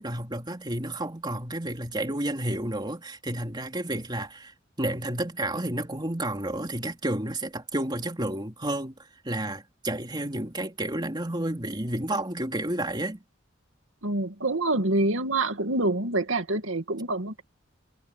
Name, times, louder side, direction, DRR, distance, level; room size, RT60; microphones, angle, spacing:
voice 1, 0.0-13.2, right 1 dB, 20° right, 3.4 m, -31 dB
voice 2, 14.0-17.4, right 2 dB, 85° right, 2.3 m, -26 dB
head